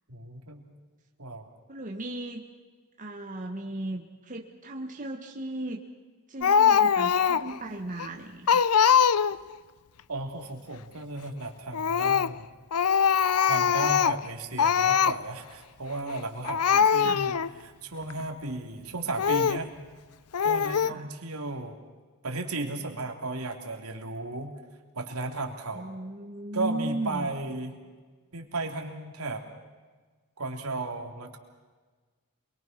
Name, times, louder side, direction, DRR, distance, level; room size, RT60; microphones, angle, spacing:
voice 1, 0.1-0.8 1.2-1.5 10.1-12.5 12.9-13.1 13.4-17.4 17.6-19.7 20.4-21.8 22.2-24.5 24.9-25.9 26.5-27.7 28.3-29.4 30.4-31.4, right 2 dB, 70° right, 3 dB, 3.3 m, -35 dB
voice 2, 1.7-2.4 3.0-5.8 6.3-8.6 16.7-17.2 20.8-21.1 25.7-27.3, right 1 dB, 35° right, 1 dB, 1.7 m, -36 dB
Speech, 6.4-7.6 8.0-8.1 8.5-9.5 11.7-12.4 12.7-14.3 14.6-15.2 16.1-16.2 16.5-17.5 18.1-18.2 19.2-19.7 20.3-20.9, left 7 dB, 80° left, 0.6 m, -22 dB
28.0 x 22.5 x 6.1 m, 1.4 s
head